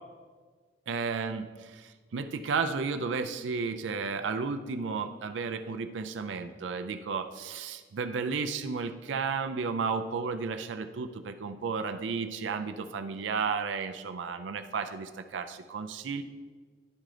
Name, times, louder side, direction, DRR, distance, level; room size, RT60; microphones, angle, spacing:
voice 1, 0.9-16.2, right 5 dB, 80° right, 8 dB, 0.4 m, -33 dB
10.5 x 3.8 x 4.9 m, 1.5 s
head